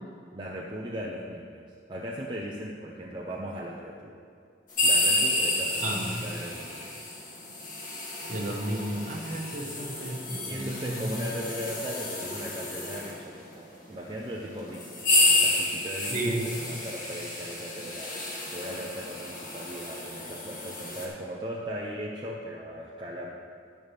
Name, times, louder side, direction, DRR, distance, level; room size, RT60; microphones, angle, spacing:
voice 1, 0.3-4.1 4.8-6.9 10.5-18.2 18.5-23.3, equal, 25° right, -4 dB, 0.8 m, -38 dB
sound 1, 4.7-13.2 13.9-14.0 14.7-21.1, left 2 dB, 50° left, 2.1 m, -30 dB
voice 2, 5.8-6.2 8.3-11.1 16.1-16.5, right 1 dB, 45° right, 0 dB, 1.4 m, -32 dB
10.5 x 10.5 x 3.5 m, 2.4 s
head